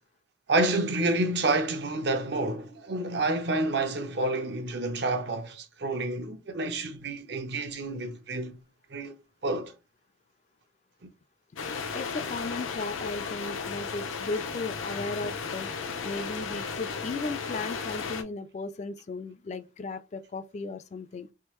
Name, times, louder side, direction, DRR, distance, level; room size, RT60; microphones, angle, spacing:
voice 1, 0.5-8.6 8.9-9.2 9.4-9.7 11.0-11.1, right 2 dB, 55° right, 0.6 m, -29 dB
sound 1, 11.6-18.2, left 5 dB, 90° left, 0.7 m, -35 dB
voice 2, 11.9-15.7 16.0-21.3, left 3 dB, 35° left, 0.3 m, -36 dB
3.5 x 2.6 x 3.0 m
head